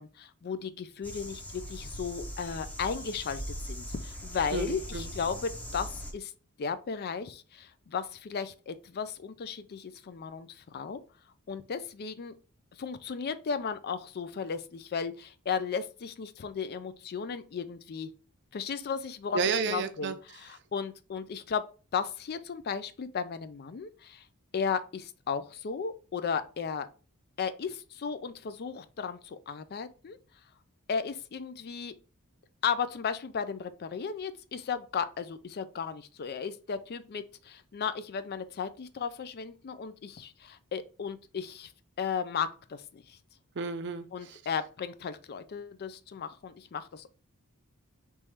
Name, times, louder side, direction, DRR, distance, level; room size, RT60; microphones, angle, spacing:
voice 1, 0.0-6.3 6.6-11.0 11.5-12.4 12.8-18.1 18.5-21.7 21.9-24.2 24.5-26.9 27.4-30.2 30.9-31.9 32.6-41.7 42.0-43.2 44.1-47.1, left 6 dB, 45° left, 0.4 m, -35 dB
sound 1, 1.0-6.1, equal, 5° left, 0.7 m, -40 dB
voice 2, 4.5-5.1 19.3-20.1 43.6-44.4, right 4 dB, 50° right, 0.5 m, -31 dB
3.6 x 3.1 x 4.3 m
head